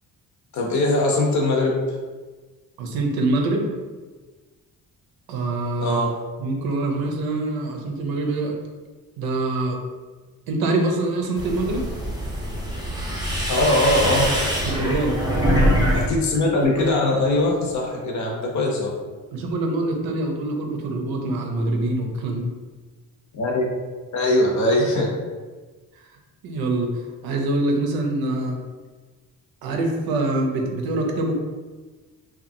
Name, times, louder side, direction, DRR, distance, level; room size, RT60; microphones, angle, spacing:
voice 1, 0.5-1.8 5.8-6.2 13.5-14.2 15.9-18.9 23.3-23.7 24.1-25.1, left 1 dB, 50° left, 0 dB, 0.7 m, -21 dB
voice 2, 2.8-3.7 5.3-6.0 6.4-8.5 9.2-9.8 10.5-11.9 14.6-15.2 19.3-22.5 26.4-28.6 29.6-31.3, right 2 dB, 80° right, 2 dB, 0.6 m, -24 dB
sound 1, 11.4-16.0 16.3-17.0, equal, 10° right, 0.5 m, -23 dB
2.8 x 2.4 x 2.5 m, 1.3 s
cardioid pair, 130°, 36 cm